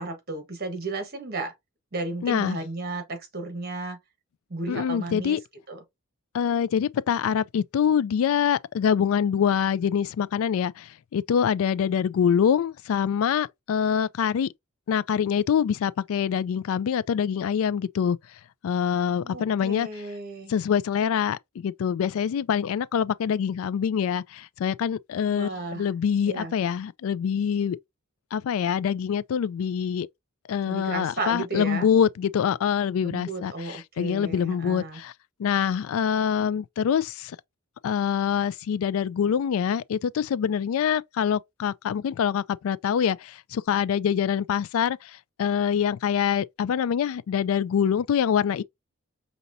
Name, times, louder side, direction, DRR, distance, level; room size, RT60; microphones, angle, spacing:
voice 1, 0.0-1.5 1.9-4.0 4.5-5.4 5.7-5.8 19.2-20.5 25.3-25.9 26.3-26.5 30.6-31.9 33.0-35.0, right 2 dB, 45° right, 1.2 m, -34 dB
voice 2, 2.2-2.6 4.7-5.4 6.3-14.5 14.9-18.2 18.6-19.9 20.5-25.5 25.7-27.8 28.3-30.1 30.5-35.1 35.4-37.4 37.8-48.6, left 8 dB, 70° left, 0.3 m, -25 dB
5.3 x 2.9 x 2.6 m
head